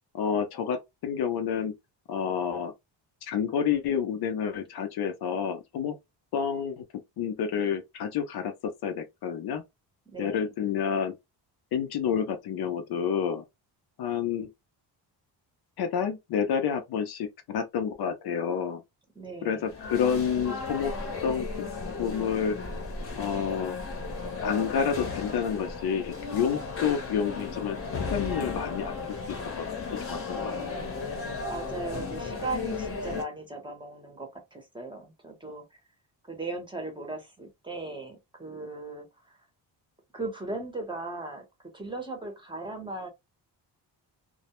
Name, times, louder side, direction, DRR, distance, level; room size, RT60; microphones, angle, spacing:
voice 1, 0.1-1.7 2.1-2.7 3.2-6.0 6.3-6.8 7.2-8.5 8.8-9.6 10.2-11.1 11.7-13.4 14.0-14.5 15.8-18.8 19.4-20.9 21.2-21.5 22.0-22.6 23.2-23.8 24.4-27.8 28.1-28.9 29.6-29.7 30.1-30.6, left 7 dB, 60° left, 0.6 m, -29 dB
voice 2, 10.1-10.5 19.1-19.7 31.5-35.8 36.2-39.4 40.1-41.4 41.7-43.1, right 2 dB, 10° right, 0.7 m, -37 dB
sound 1, 19.6-33.2, left 4 dB, 30° left, 0.8 m, -35 dB
2.2 x 2.1 x 2.9 m
cardioid pair, 130°, 42 cm